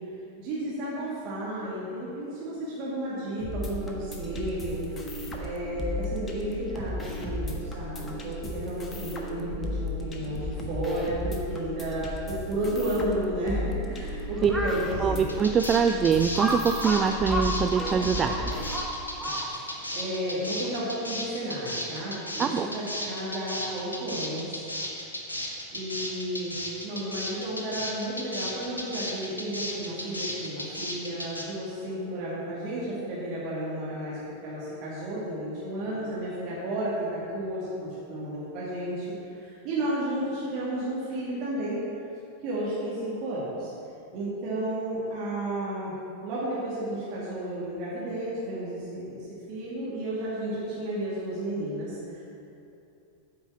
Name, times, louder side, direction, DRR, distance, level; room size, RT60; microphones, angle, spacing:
voice 1, 0.4-15.3 19.2-24.6 25.7-26.5 26.8-39.1 39.3-41.8 42.4-43.7 44.1-45.9 46.2-49.2 49.5-52.2, right 1 dB, 40° right, -8 dB, 2.4 m, -32 dB
sound 1, 3.4-18.8, left 1 dB, 20° left, 1.3 m, -35 dB
Crow, 14.4-14.9 15.5-15.6 16.4-19.8, right 1 dB, 5° right, 1.2 m, -31 dB
voice 2, 15.0-18.4 22.4-22.7, right 7 dB, 25° right, 7 dB, 0.3 m, -24 dB
sound 2, 15.3-31.4, left 1 dB, 80° left, 1.3 m, -34 dB
9.2 x 6.0 x 7.4 m, 2.7 s
figure-of-eight pair, 90°, 0 cm